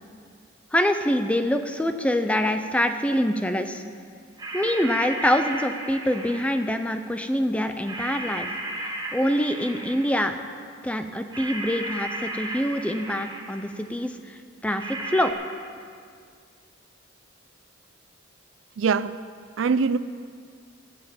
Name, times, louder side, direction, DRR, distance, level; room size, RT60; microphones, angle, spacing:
voice 1, 0.7-3.8 4.5-8.5 9.1-10.3 10.8-15.3, equal, 5° left, 7 dB, 0.6 m, -25 dB
sound 1, 4.4-6.8 7.8-10.3 11.3-13.7 14.8-15.3, right 1 dB, 20° right, 1.3 m, -35 dB
voice 2, 18.8-19.2 19.6-20.0, right 5 dB, 75° right, 15 dB, 0.4 m, -22 dB
15.0 x 7.4 x 8.6 m, 2.2 s
head